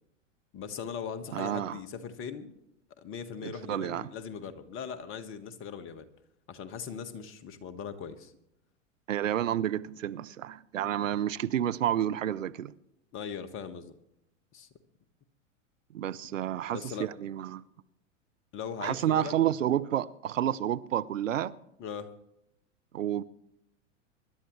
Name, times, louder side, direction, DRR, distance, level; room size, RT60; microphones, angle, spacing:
voice 1, 0.5-2.5 3.0-6.0 6.5-8.3 13.1-13.9 14.5-14.7 16.6-17.1 18.5-19.4 21.8-22.1, left 7 dB, 35° left, 1.5 m, -39 dB
voice 2, 1.3-1.8 3.4-4.1 9.1-12.7 15.9-17.6 18.8-21.5 22.9-23.2, right 11 dB, 80° right, 0.8 m, -30 dB
24.5 x 11.5 x 3.2 m
hypercardioid pair, 100°, 38 cm